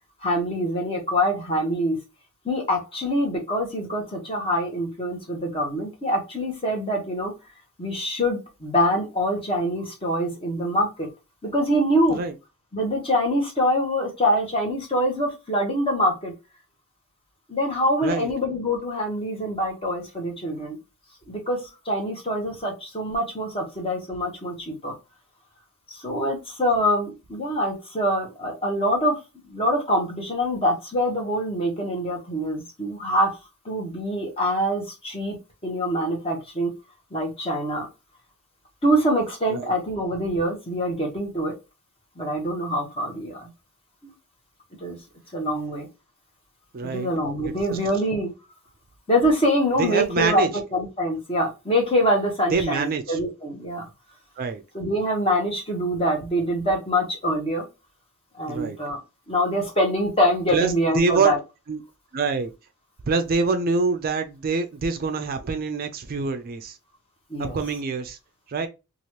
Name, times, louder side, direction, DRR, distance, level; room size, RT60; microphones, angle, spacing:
voice 1, 0.2-2.0 2.4-7.3 7.8-11.1 11.4-12.2 12.7-16.3 17.5-20.8 21.3-24.9 25.9-29.2 29.5-33.4 33.6-35.4 35.6-36.7 37.1-37.9 38.8-41.5 42.2-43.5 44.0-44.1 44.8-45.0 45.3-45.9 46.9-48.3 49.1-50.4 50.7-53.9 54.7-57.7 58.4-59.0 59.3-61.4 67.3-67.6, equal, 25° left, 1.0 m, -24 dB
voice 2, 46.7-47.1 47.7-47.8 49.8-50.5 52.5-53.2 54.4-54.6 58.5-58.8 60.5-61.3 61.7-61.8 62.1-62.5 63.0-66.8 67.4-68.2 68.5-68.7, right 4 dB, 40° right, 0.4 m, -25 dB
2.9 x 2.4 x 3.0 m
head